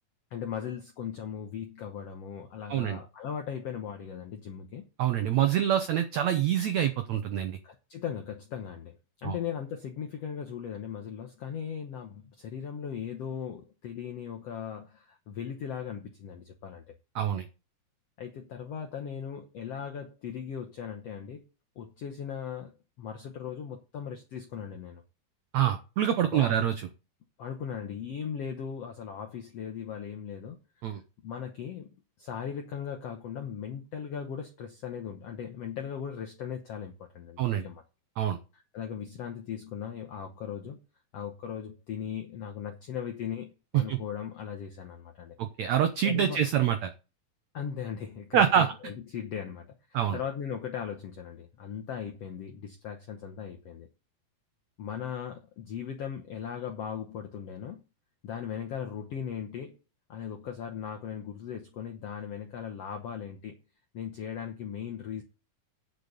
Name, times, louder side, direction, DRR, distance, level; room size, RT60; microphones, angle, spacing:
voice 1, 0.3-4.9 7.6-16.8 18.2-21.4 21.7-25.0 26.3-26.7 27.4-30.6 31.2-37.8 38.5-40.8 41.1-45.4 46.0-46.5 47.5-53.9 54.8-57.8 58.2-59.8 60.1-63.6 63.9-65.2, left 8 dB, 80° left, 1.4 m, -38 dB
voice 2, 5.0-7.6 9.2-9.3 17.1-17.4 25.5-26.7 30.8-31.0 37.4-37.6 38.2-38.4 43.9-44.0 45.4-46.9 48.3-48.7 49.9-50.2, right 10 dB, 90° right, 1.5 m, -26 dB
9.3 x 6.7 x 6.8 m
omnidirectional pair, 4.4 m